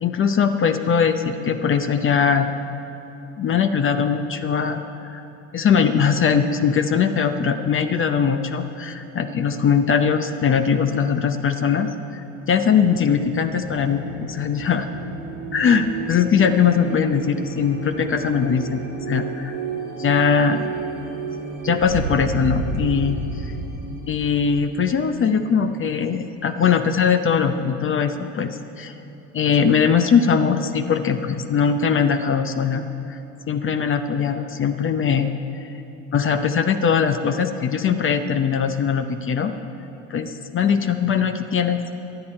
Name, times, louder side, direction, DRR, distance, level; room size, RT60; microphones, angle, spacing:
voice 1, 0.0-2.5 3.4-5.2 5.5-12.2 12.5-14.9 15.5-19.6 20.0-20.7 21.6-23.5 24.1-28.9 29.3-33.2 33.5-35.3 36.1-39.5 40.1-41.8, left 6 dB, 30° left, 8 dB, 0.7 m, -21 dB
sound 1, 12.6-26.1, right 4 dB, 90° right, 2.6 m, -32 dB
23.0 x 8.6 x 4.4 m, 2.9 s
hypercardioid pair, 80°, 41 cm